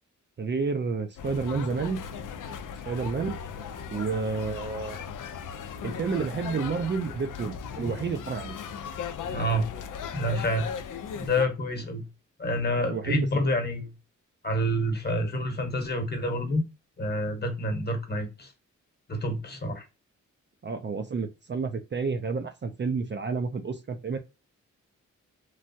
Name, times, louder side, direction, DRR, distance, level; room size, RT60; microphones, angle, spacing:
voice 1, 0.4-2.0 2.8-3.4 3.9-5.0 5.8-8.6 12.9-13.3 20.6-24.2, right 5 dB, 35° right, 0.5 m, -30 dB
sound 1, 1.2-11.4, left 7 dB, 85° left, 0.5 m, -37 dB
voice 2, 9.3-9.7 10.1-10.7 11.1-12.1 12.4-13.9 14.4-16.6 17.0-18.5 19.1-19.8, equal, 35° left, 1.0 m, -28 dB
3.1 x 2.3 x 2.5 m
cardioid pair, 80°, 31 cm